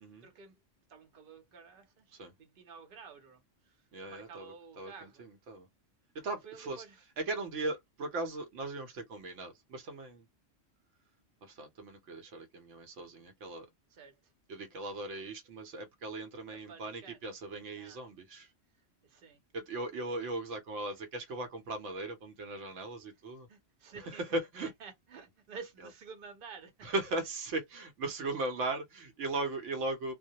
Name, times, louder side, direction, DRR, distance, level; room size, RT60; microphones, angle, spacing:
voice 1, 0.2-0.6 0.9-5.2 6.4-7.0 13.9-14.3 16.5-17.2 17.8-18.0 19.0-19.4 23.5-24.2 24.6-26.9, right 5 dB, 50° right, 0.8 m, -51 dB
voice 2, 3.9-5.7 6.1-6.8 7.2-10.2 11.4-13.7 14.5-18.5 19.5-23.5 23.9-24.7 26.8-30.1, right 2 dB, 80° right, 1.0 m, -38 dB
2.2 x 2.1 x 2.7 m
omnidirectional pair, 1.2 m